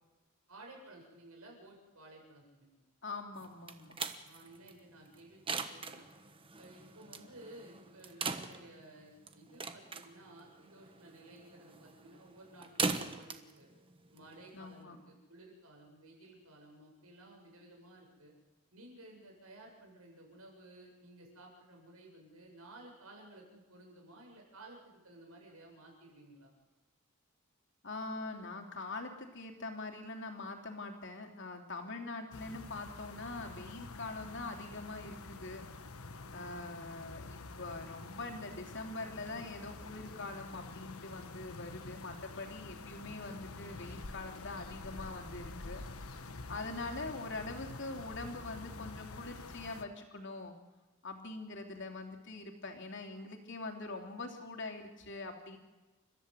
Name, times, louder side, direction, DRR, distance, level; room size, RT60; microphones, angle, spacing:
voice 1, 0.5-2.8 4.2-5.4 5.7-6.1 6.6-13.7 14.1-18.3 18.7-26.5 36.2-36.5 42.7-42.9 47.0-47.3, right 1 dB, 90° right, 0 dB, 7.9 m, -55 dB
voice 2, 3.0-3.9 14.5-15.0 27.8-35.7 36.3-45.8 46.5-50.5 51.0-55.6, left 3 dB, 55° left, 4 dB, 3.1 m, -43 dB
sound 1, 3.4-14.8, right 4 dB, 25° right, 1.3 m, -41 dB
sound 2, 32.3-49.8, left 3 dB, 85° left, 1.4 m, -48 dB
30.0 x 14.5 x 8.1 m, 1.2 s
head